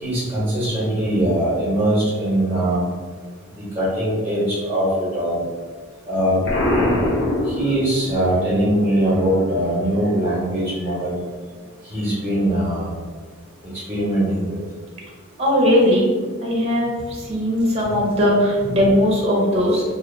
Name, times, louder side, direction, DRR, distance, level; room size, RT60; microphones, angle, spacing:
voice 1, 0.0-2.9 3.8-4.9 5.1-5.4 6.1-6.4 7.5-11.2 11.9-12.9 13.9-14.5, right 1 dB, 10° right, -8 dB, 1.4 m, -21 dB
Explosion, 6.5-8.3, left 1 dB, 55° left, 0.9 m, -22 dB
voice 2, 15.4-16.1 16.4-19.8, equal, 30° right, -3 dB, 0.9 m, -18 dB
3.0 x 2.6 x 4.0 m, 1.5 s
head